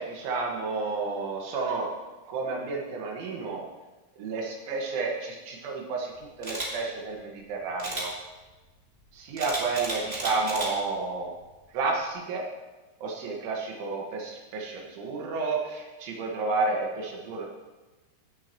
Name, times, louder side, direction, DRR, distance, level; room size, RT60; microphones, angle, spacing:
voice 1, 0.0-1.9 2.3-3.6 4.2-8.1 9.1-11.3 11.7-12.4 13.0-17.5, right 3 dB, 80° right, -1 dB, 4.2 m, -31 dB
Camera, 6.4-6.7 7.8-8.1 9.4-10.7 11.2-11.4, right 1 dB, 30° right, 1.1 m, -33 dB
16.5 x 10.5 x 3.1 m, 1.2 s
omnidirectional pair, 5.3 m